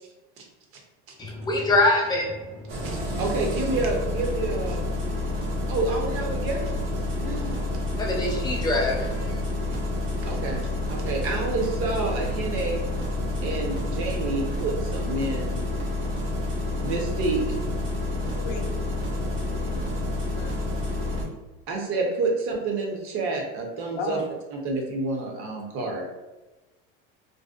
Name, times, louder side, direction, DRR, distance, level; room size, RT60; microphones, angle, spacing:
voice 1, 1.2-2.8 8.0-9.4, left 2 dB, 15° left, -2 dB, 0.5 m, -24 dB
Engine starting, 2.7-21.2, left 2 dB, 85° right, 0.9 m, -29 dB
voice 2, 2.8-4.9 5.7-6.8 7.2-7.5 10.2-12.8 13.4-15.6 16.8-17.4 21.7-24.2 24.5-26.1, right 3 dB, 45° right, 1 dB, 0.6 m, -29 dB
voice 3, 18.4-18.7 19.2-20.1 20.4-20.5 24.0-24.3 25.9-26.1, left 5 dB, 85° left, 4 dB, 0.5 m, -36 dB
2.6 x 2.0 x 2.3 m, 1.1 s
supercardioid pair, 135°, 30 cm